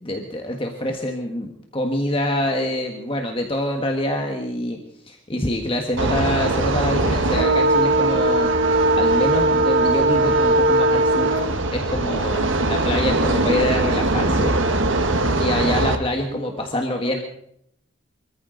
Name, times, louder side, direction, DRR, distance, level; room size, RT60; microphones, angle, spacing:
voice 1, 0.0-4.8 5.1-8.5 9.0-11.3 11.7-14.6 15.4-17.2, left 1 dB, 25° left, 2 dB, 1.5 m, -25 dB
sound 1, 6.0-16.0, right 2 dB, 80° right, 1.4 m, -20 dB
voice 2, 15.0-16.8, equal, 10° right, 0 dB, 4.8 m, -37 dB
25.0 x 14.0 x 3.9 m, 0.71 s
head